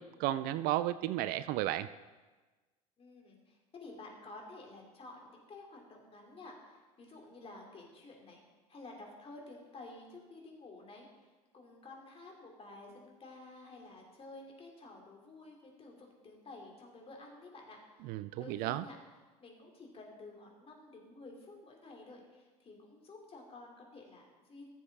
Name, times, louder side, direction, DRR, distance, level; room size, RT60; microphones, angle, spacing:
voice 1, 0.0-1.9 18.0-18.8, right 14 dB, 50° right, 14 dB, 0.4 m, -33 dB
voice 2, 3.0-8.4 8.7-11.3 11.5-18.1 18.4-19.0 19.4-24.7, left 2 dB, 30° left, 0 dB, 2.9 m, -52 dB
15.0 x 7.2 x 3.6 m, 1.3 s
hypercardioid pair, 70°, 19 cm